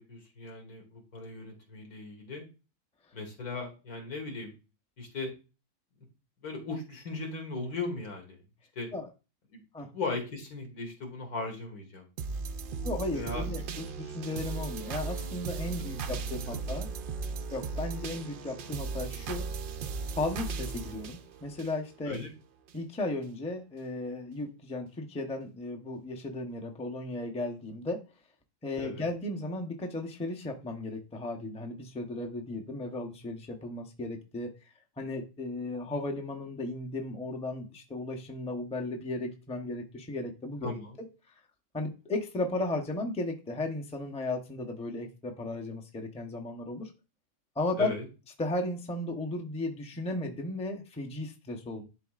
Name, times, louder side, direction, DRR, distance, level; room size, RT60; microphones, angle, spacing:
voice 1, 0.0-2.4 3.1-4.5 5.0-5.3 6.4-8.4 8.8-8.9 9.5-12.1 13.1-13.4 16.0-16.1 16.5-16.6 22.1-22.3 28.8-29.1 40.6-41.0 47.8-48.1, left 3 dB, 85° left, 2 dB, 2.3 m, -38 dB
sound 1, 12.2-22.2 22.7-22.8, right 4 dB, 80° right, 0.4 m, -37 dB
voice 2, 12.8-16.9 17.5-19.5 20.1-22.2 22.7-28.0 28.6-34.5 35.0-41.4 41.7-46.9 47.6-47.9 48.4-51.9, left 2 dB, 5° left, 3 dB, 0.6 m, -35 dB
11.5 x 4.1 x 2.4 m, 0.30 s
omnidirectional pair, 1.5 m